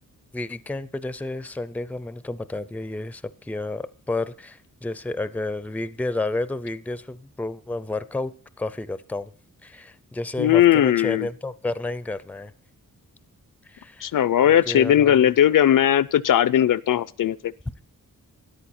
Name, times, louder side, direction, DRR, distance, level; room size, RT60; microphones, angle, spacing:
voice 1, 0.3-9.3 9.6-12.5 13.6-14.1 14.4-15.2, left 2 dB, 5° left, 0.5 m, -31 dB
voice 2, 10.4-11.3 14.0-17.4, left 11 dB, 70° left, 0.5 m, -18 dB
13.0 x 10.5 x 4.2 m
wide cardioid pair, 175°, 34 cm